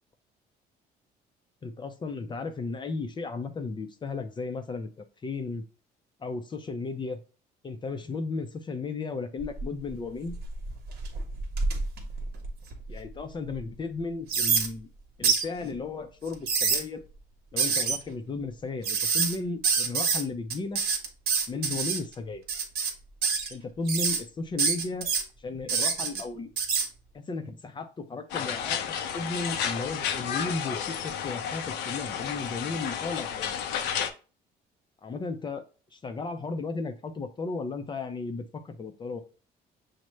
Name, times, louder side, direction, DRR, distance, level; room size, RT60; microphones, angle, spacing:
voice 1, 1.6-5.6 6.2-7.2 7.6-10.4 12.9-14.9 15.2-17.0 17.5-20.8 21.5-22.4 23.5-25.1 25.4-26.5 27.1-28.8 29.1-33.6 35.0-35.6 35.9-39.2, left 3 dB, 30° left, 7 dB, 0.5 m, -34 dB
sound 1, 9.4-9.9 10.3-13.0 13.5-13.6 14.3-14.7 15.2-15.5 16.3-16.8 17.6-18.0 18.8-19.4 19.6-20.2 20.5-22.0 22.5-22.9 23.2-23.5 23.9-24.2 24.6-25.2 25.7-26.2 26.6-26.9, right 5 dB, 70° right, 1.0 m, -26 dB
sound 2, 28.3-34.1, left 8 dB, 85° left, 0.5 m, -32 dB
6.2 x 2.1 x 3.1 m, 0.36 s
cardioid pair, 110°, 17 cm